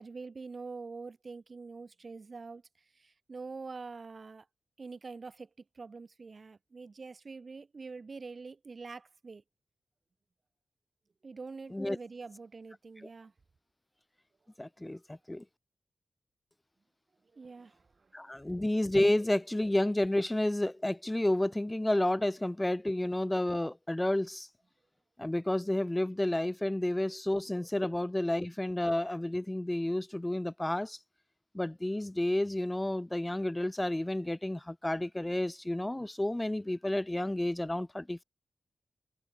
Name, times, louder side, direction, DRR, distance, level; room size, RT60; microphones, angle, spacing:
voice 1, 0.0-2.6 3.0-4.4 4.8-5.5 5.7-9.4 11.2-13.3 17.3-17.8 18.2-18.5, right 4 dB, 40° right, 1.5 m, -45 dB
voice 2, 14.6-15.4 18.1-24.5 25.2-31.0 31.5-38.2, left 1 dB, 10° left, 0.8 m, -31 dB
wide cardioid pair, 125°, 0 cm